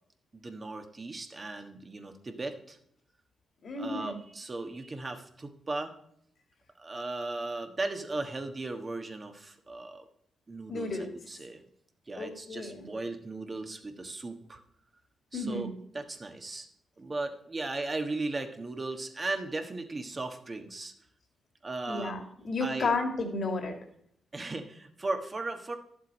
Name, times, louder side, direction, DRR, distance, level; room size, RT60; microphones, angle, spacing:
voice 1, 0.3-2.8 3.8-5.9 6.8-10.1 10.5-11.6 12.1-14.6 15.3-16.7 17.0-20.9 21.6-22.1 22.6-22.9 24.3-25.8, right 2 dB, 30° right, 6 dB, 1.4 m, -37 dB
voice 2, 3.6-4.2 10.7-11.1 12.2-12.9 15.3-15.7 21.9-23.8, left 3 dB, 60° left, 5 dB, 2.1 m, -32 dB
11.5 x 7.4 x 4.2 m, 0.69 s
cardioid pair, 75°, 0 cm